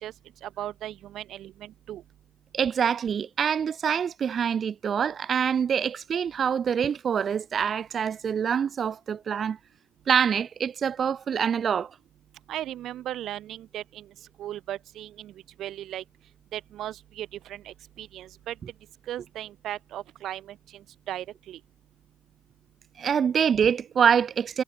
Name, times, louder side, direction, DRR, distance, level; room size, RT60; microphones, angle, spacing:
voice 1, 0.4-2.0 12.5-14.1 14.4-15.3 15.6-16.0 16.5-18.6 19.1-21.6, right 12 dB, 80° right, 2.5 m, -37 dB
voice 2, 2.5-9.6 10.1-11.9 23.0-24.6, right 7 dB, 55° right, 1.3 m, -25 dB
cardioid pair, 90°, 0 cm